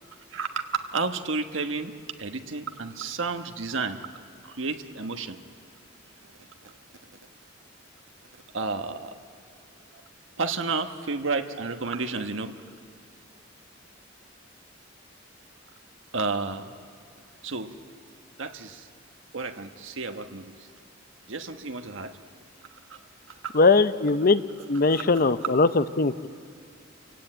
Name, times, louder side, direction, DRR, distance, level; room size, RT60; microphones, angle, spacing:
voice 1, 0.3-1.9 2.2-4.0 4.5-5.4 8.5-9.1 9.9-10.0 10.4-12.5 16.1-16.8 17.4-17.7 18.4-18.9 19.3-20.4 21.3-22.1 22.9-23.0 24.9-25.0, right 4 dB, 75° right, 6 dB, 1.2 m, -31 dB
voice 2, 23.5-24.4 24.7-26.3, left 3 dB, 45° left, 13 dB, 0.7 m, -20 dB
27.0 x 17.0 x 8.9 m, 2.2 s
head